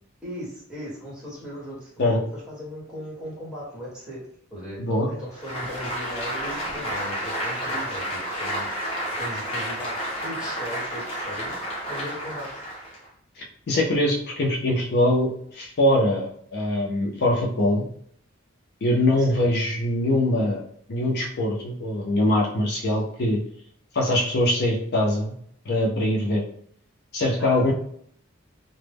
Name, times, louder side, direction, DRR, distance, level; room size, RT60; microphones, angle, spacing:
voice 1, 0.2-4.2 4.5-8.8 9.2-11.6 11.8-12.5 19.2-19.5 27.3-27.7, equal, 5° right, -7 dB, 1.0 m, -37 dB
Applause, 5.3-13.1, equal, 30° left, 0.7 m, -31 dB
voice 2, 13.4-17.9 18.8-20.6 20.9-23.4 23.9-25.4 25.7-26.4 27.1-27.7, left 1 dB, 55° left, -2 dB, 0.5 m, -23 dB
2.1 x 2.0 x 3.3 m, 0.63 s
head